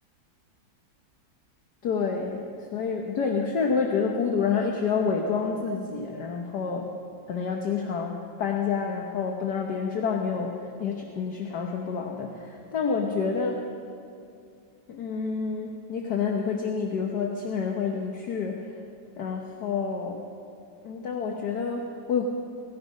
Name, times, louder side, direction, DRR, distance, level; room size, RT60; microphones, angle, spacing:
voice 1, 1.8-2.4 2.7-6.9 7.3-10.5 10.8-13.6 14.9-18.7 19.2-20.2 20.8-22.3, left 5 dB, 60° left, 1 dB, 1.6 m, -28 dB
18.5 x 15.0 x 5.2 m, 2.4 s
omnidirectional pair, 2.0 m